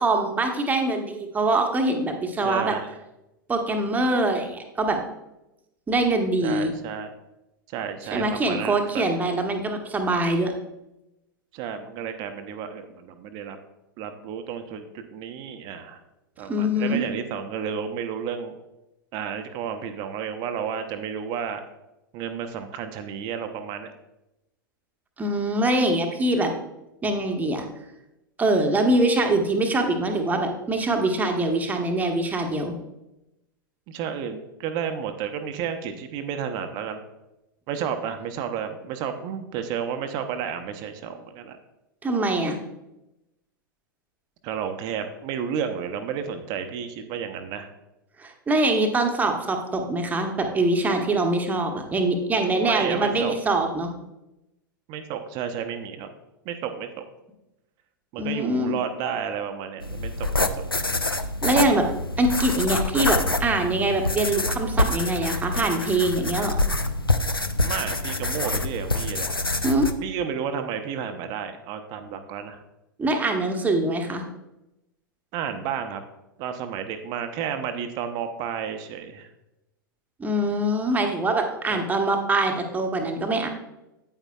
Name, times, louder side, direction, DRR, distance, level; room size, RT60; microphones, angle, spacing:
voice 1, 0.0-2.7 3.5-5.0 5.9-6.7 8.1-10.5 16.4-17.0 25.2-26.5 27.0-27.7 28.4-32.7 42.0-42.6 48.2-53.9 58.2-58.8 61.4-61.8 62.2-66.6 69.6-69.9 73.0-74.2 80.2-83.5, right 2 dB, 15° right, 3 dB, 1.0 m, -23 dB
voice 2, 2.4-2.9 6.4-7.1 7.7-9.1 11.5-13.6 14.0-16.0 16.4-18.6 19.1-21.6 22.1-23.9 33.9-37.0 37.7-41.6 44.4-47.7 51.3-51.4 52.6-53.4 54.9-56.1 56.4-56.9 58.1-60.5 67.6-69.3 70.0-72.6 75.3-76.0 76.4-79.3 81.7-81.8, right 7 dB, 40° right, 7 dB, 0.8 m, -32 dB
sound 1, 59.8-69.9, left 2 dB, 90° left, 0.5 m, -26 dB
9.1 x 8.8 x 2.3 m, 0.92 s
figure-of-eight pair, 95°, 12 cm